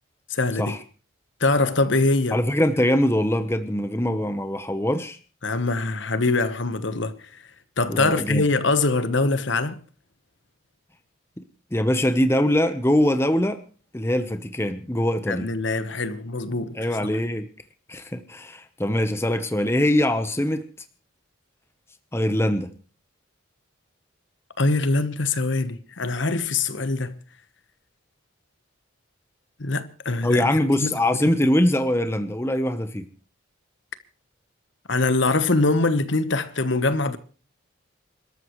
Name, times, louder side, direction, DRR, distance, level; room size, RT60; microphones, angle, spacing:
voice 1, 0.3-0.8 1.4-2.4 5.4-7.2 7.8-9.8 15.3-16.9 24.6-27.2 29.6-30.5 30.8-30.9 31.3-31.4 34.9-37.2, left 3 dB, 60° left, 1.2 m, -23 dB
voice 2, 2.3-5.2 7.9-8.5 11.4-11.5 11.7-13.6 13.9-15.5 16.7-17.5 17.9-20.6 22.1-22.7 30.2-33.1, left 1 dB, 10° left, 0.9 m, -23 dB
28.5 x 13.0 x 3.1 m
head